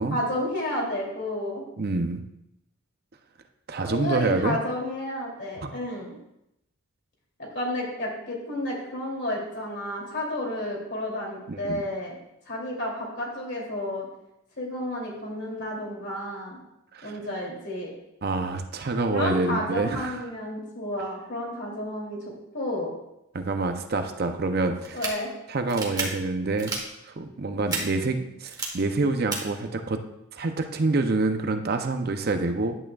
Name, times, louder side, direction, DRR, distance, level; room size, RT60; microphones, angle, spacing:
voice 1, 0.0-1.7 3.8-6.1 7.4-12.1 12.5-14.1 14.6-16.6 17.0-17.9 19.1-22.2 22.5-22.9 24.9-25.3, left 1 dB, 50° left, -2 dB, 2.7 m, -31 dB
voice 2, 1.8-2.2 3.7-4.6 5.6-5.8 11.5-11.8 16.9-17.1 18.2-20.2 23.3-25.0 25.5-26.7 27.0-30.0 30.3-32.7, right 3 dB, 45° right, 7 dB, 0.5 m, -27 dB
sound 1, 24.8-25.1 25.7-26.0 26.6-26.8 27.7-27.8 28.5-28.7 29.3-29.4, right 4 dB, 20° right, 1.2 m, -30 dB
11.0 x 8.7 x 2.3 m, 0.84 s
head